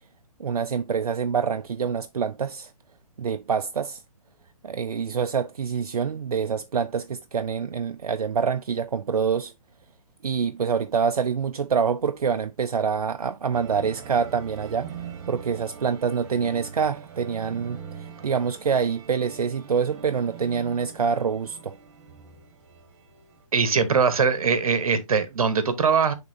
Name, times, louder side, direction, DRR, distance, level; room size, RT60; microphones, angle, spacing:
voice 1, 0.4-2.7 3.2-4.0 4.6-9.5 10.2-14.9 15.3-21.8, right 6 dB, 85° right, 0.5 m, -26 dB
sound 1, 13.5-23.5, right 7 dB, 50° right, 2.1 m, -42 dB
voice 2, 23.5-26.1, right 5 dB, 70° right, 1.2 m, -21 dB
9.5 x 3.6 x 2.7 m
hypercardioid pair, 135°, 19 cm